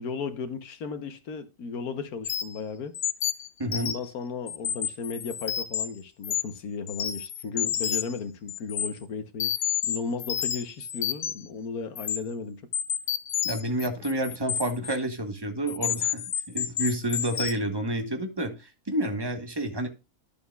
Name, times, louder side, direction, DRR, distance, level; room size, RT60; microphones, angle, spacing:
voice 1, 0.0-3.0 3.7-9.5 9.8-12.7, left 5 dB, 80° left, 1.5 m, -35 dB
sound 1, 2.2-2.6 2.9-4.1 4.5-5.8 6.2-6.6 6.9-8.2 8.5-8.9 9.4-11.5 12.0-12.2 12.7-15.0 15.7-17.5, left 9 dB, 55° left, 0.9 m, -29 dB
voice 2, 3.6-3.9 13.4-19.9, right 1 dB, 20° right, 1.2 m, -29 dB
11.5 x 7.0 x 2.3 m
omnidirectional pair, 1.6 m